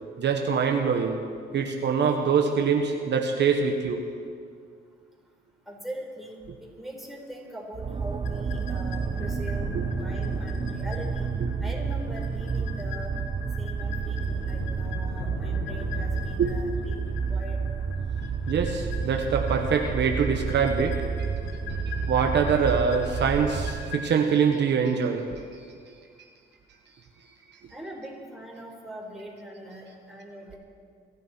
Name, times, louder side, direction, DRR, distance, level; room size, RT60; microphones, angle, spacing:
voice 1, 0.2-1.2 1.5-4.0 9.7-9.8 11.4-11.5 16.4-16.5 18.5-21.0 21.9-25.4, right 6 dB, 60° right, 3 dB, 1.3 m, -24 dB
voice 2, 5.7-6.4 6.8-9.7 10.0-11.3 11.6-13.1 13.6-17.6 27.7-30.6, equal, ahead, -2 dB, 4.6 m, -41 dB
sound 1, 7.7-24.0, right 6 dB, 30° right, 0.5 m, -30 dB
sound 2, 8.2-24.1, left 5 dB, 80° left, 1.6 m, -39 dB
26.0 x 11.5 x 4.5 m, 2.2 s
cardioid pair, 90°, 20 cm